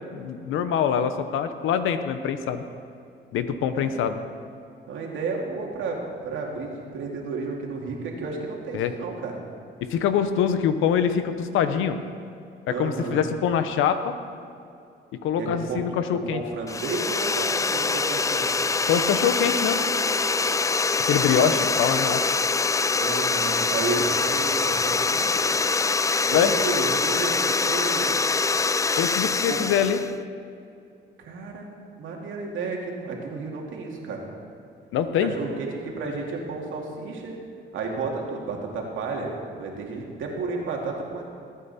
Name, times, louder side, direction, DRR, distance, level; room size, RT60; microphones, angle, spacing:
voice 1, 0.1-2.6 3.3-4.2 8.7-8.9 9.8-12.0 12.7-14.1 15.2-16.4 18.9-19.8 21.0-22.2 26.3-26.6 29.0-30.0 34.9-35.3, left 8 dB, 90° left, 10 dB, 0.9 m, -24 dB
voice 2, 3.7-4.1 4.9-9.4 12.7-13.3 15.4-18.5 21.4-21.7 22.9-25.5 26.2-28.2 29.4-29.6 31.2-31.7 32.0-34.2 35.2-37.3 37.7-41.2, right 4 dB, 80° right, -1 dB, 2.5 m, -32 dB
sound 1, 16.7-30.1, left 4 dB, 15° left, 0.3 m, -24 dB
20.5 x 9.1 x 4.2 m, 2.5 s
cardioid pair, 90°, 20 cm